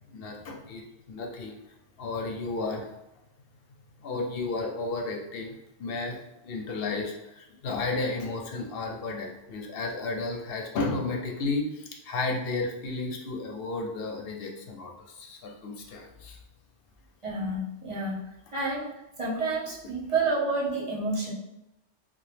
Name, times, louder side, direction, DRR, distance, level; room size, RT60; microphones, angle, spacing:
voice 1, 0.1-2.9 4.0-16.4, left 3 dB, 65° left, 1 dB, 0.7 m, -33 dB
voice 2, 17.2-21.3, right 3 dB, 35° right, -7 dB, 0.7 m, -30 dB
2.7 x 2.2 x 3.2 m, 0.91 s
omnidirectional pair, 1.1 m